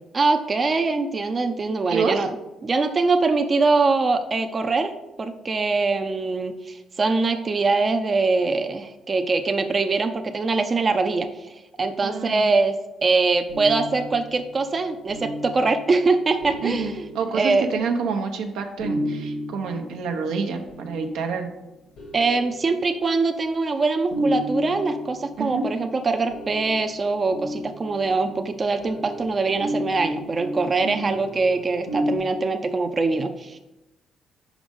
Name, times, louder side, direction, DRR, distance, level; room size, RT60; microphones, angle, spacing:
voice 1, 0.1-2.3 2.6-4.9 5.2-12.8 13.0-17.1 17.3-17.7 22.1-33.6, right 3 dB, 35° right, 7 dB, 0.5 m, -23 dB
voice 2, 1.9-2.3 12.0-12.5 16.6-21.5 25.4-25.7 30.8-31.2, right 5 dB, 90° right, 4 dB, 0.8 m, -28 dB
sound 1, 13.5-18.1 18.8-21.4 22.0-23.4 24.1-32.2, equal, 85° left, 2.4 m, -33 dB
5.2 x 5.0 x 5.2 m, 0.98 s
cardioid pair, 90°, 0 cm